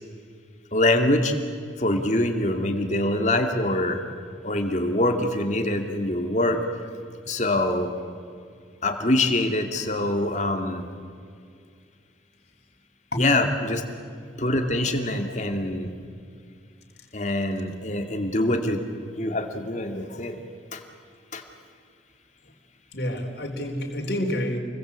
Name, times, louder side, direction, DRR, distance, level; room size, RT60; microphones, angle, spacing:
voice 1, 0.7-1.3 1.8-4.0 4.4-6.6 7.3-7.9 8.8-10.8 13.1-13.8 14.4-15.9 17.1-20.4 20.7-20.8 21.3-21.4, left 1 dB, 40° left, 5 dB, 2.5 m, -24 dB
voice 2, 22.9-24.6, left 1 dB, 60° left, 2 dB, 4.1 m, -28 dB
29.0 x 21.5 x 8.4 m, 2.3 s
head